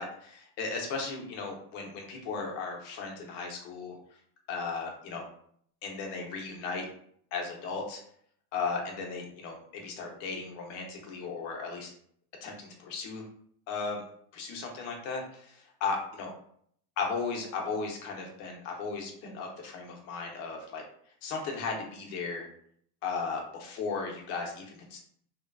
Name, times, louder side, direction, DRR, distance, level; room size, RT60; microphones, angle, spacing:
voice 1, 0.0-4.0 4.5-5.2 5.8-6.9 7.3-8.0 8.5-11.9 12.4-13.2 13.7-14.0 14.3-16.3 17.0-20.8 21.2-22.5 23.0-25.0, left 4 dB, 50° left, 1 dB, 0.9 m, -36 dB
3.0 x 2.4 x 2.3 m, 0.64 s
supercardioid pair, 140°, 45 cm